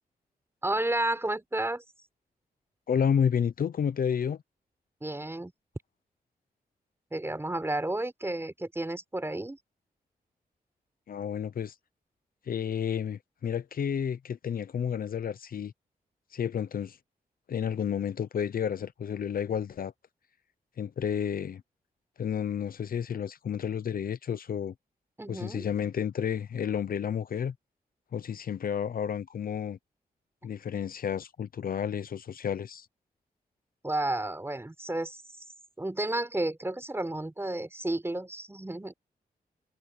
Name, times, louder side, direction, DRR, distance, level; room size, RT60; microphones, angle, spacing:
voice 1, 0.6-1.8 5.0-5.5 7.1-9.6 25.2-25.7 33.8-35.4 35.8-38.9, right 1 dB, 15° right, 5.0 m, -32 dB
voice 2, 2.9-4.4 11.1-11.7 12.5-15.7 16.3-17.0 17.5-19.9 20.8-21.6 22.2-24.7 25.3-27.5 28.1-29.8 30.4-32.9, left 8 dB, 65° left, 0.8 m, -31 dB
cardioid pair, 85°, 16 cm